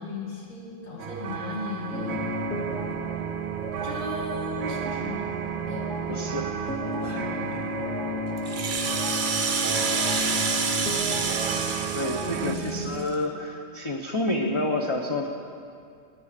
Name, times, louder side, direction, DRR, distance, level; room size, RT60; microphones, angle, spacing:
voice 1, 0.0-2.3 3.8-5.3 5.7-7.7 12.4-12.9, left 3 dB, 75° left, -3 dB, 2.4 m, -37 dB
sound 1, 1.0-12.5, right 7 dB, 70° right, 0.9 m, -35 dB
sound 2, 1.9-13.0, right 1 dB, 5° left, 0.9 m, -32 dB
voice 2, 6.1-6.5 7.0-7.3 11.1-11.4 11.9-15.3, left 2 dB, 30° left, 0 dB, 0.6 m, -29 dB
Rattle (instrument), 8.4-13.1, right 5 dB, 45° right, 0.9 m, -28 dB
21.0 x 8.8 x 5.0 m, 2.4 s
omnidirectional pair, 1.4 m